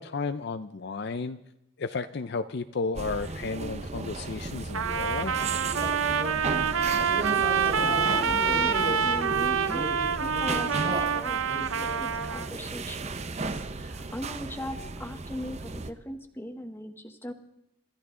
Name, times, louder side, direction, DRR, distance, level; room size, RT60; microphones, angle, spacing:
voice 1, 0.0-1.4 1.8-5.3, left 4 dB, 50° left, 10 dB, 0.5 m, -33 dB
sound 1, 3.0-15.9, right 3 dB, 30° right, 0.6 m, -34 dB
Trumpet, 4.7-12.5, right 6 dB, 70° right, 0.7 m, -27 dB
voice 2, 7.0-17.3, equal, 10° left, 6 dB, 1.0 m, -40 dB
26.0 x 13.5 x 3.8 m, 0.82 s
head